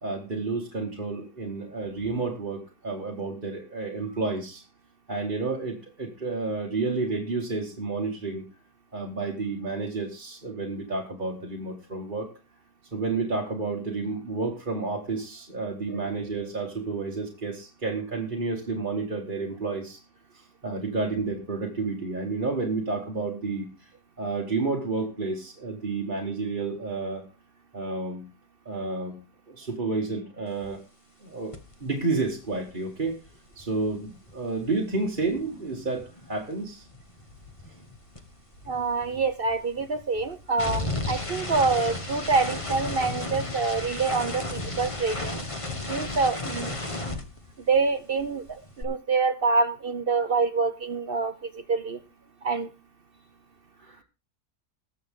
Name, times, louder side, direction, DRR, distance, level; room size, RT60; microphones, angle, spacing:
voice 1, 0.0-4.6 5.1-8.5 8.9-12.3 12.9-20.0 20.3-23.9 24.2-27.2 27.7-28.2 28.7-29.2 29.5-30.8 31.2-31.5 31.8-33.2 33.6-36.9 53.8-54.0, right 3 dB, 30° right, -2 dB, 2.0 m, -30 dB
sound 1, 31.5-31.7 32.0-36.4 36.6-47.9 48.2-48.8, left 2 dB, 20° left, 1.3 m, -35 dB
voice 2, 38.7-45.4 45.9-46.8 47.7-52.0 52.4-52.7, right 4 dB, 50° right, 11 dB, 0.7 m, -26 dB
20.5 x 7.4 x 3.8 m, 0.31 s
omnidirectional pair, 1.8 m